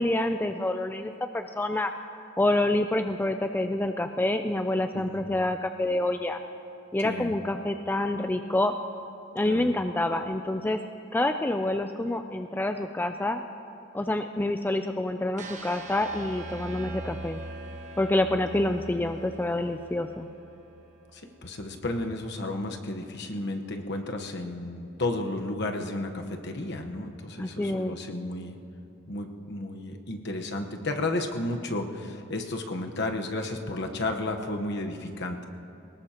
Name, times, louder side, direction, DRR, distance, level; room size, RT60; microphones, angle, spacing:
voice 1, 0.0-1.9 2.4-6.4 6.9-8.8 9.3-10.8 11.1-13.4 13.9-17.4 18.0-20.3 27.4-27.9, left 1 dB, 10° left, 7 dB, 0.3 m, -27 dB
voice 2, 4.9-5.3 7.0-7.3 9.4-9.7 21.1-28.6 29.1-35.5, left 2 dB, 60° left, 4 dB, 1.1 m, -33 dB
sound 1, 15.4-21.4, right 2 dB, 40° right, 1.2 m, -42 dB
23.0 x 19.5 x 2.9 m, 2.7 s
head